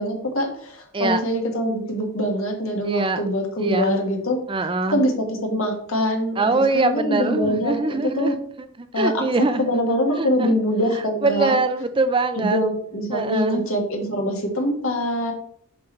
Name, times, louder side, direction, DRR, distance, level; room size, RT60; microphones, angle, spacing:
voice 1, 0.0-4.4 4.9-8.4 8.9-11.6 12.4-15.3, equal, 65° left, 1 dB, 1.9 m, -24 dB
voice 2, 2.8-3.2 3.6-4.0 4.5-5.0 6.4-8.4 8.8-9.7 10.2-10.5 11.2-12.6 13.1-13.7, right 3 dB, 25° right, 10 dB, 0.4 m, -23 dB
7.1 x 6.1 x 3.2 m, 0.62 s
head